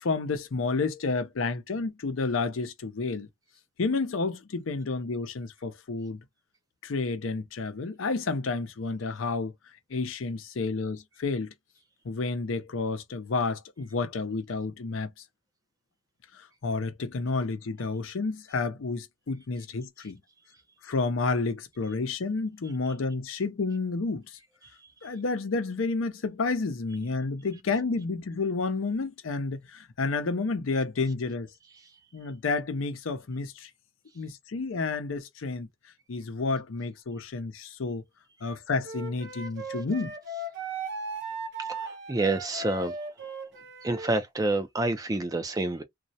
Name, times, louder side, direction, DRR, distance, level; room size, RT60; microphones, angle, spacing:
voice 1, 0.0-3.3 3.8-6.2 6.8-9.5 9.9-11.5 12.0-15.1 16.3-20.2 20.8-24.4 25.0-31.5 32.1-33.7 34.1-35.7 36.1-38.0 38.4-40.1, left 3 dB, 90° left, 0.6 m, -30 dB
Wind instrument woodwind instrument, 38.8-44.1, right 2 dB, 60° right, 0.7 m, -37 dB
voice 2, 41.7-42.9 43.8-45.8, right 2 dB, 20° right, 0.3 m, -28 dB
2.3 x 2.0 x 2.7 m
head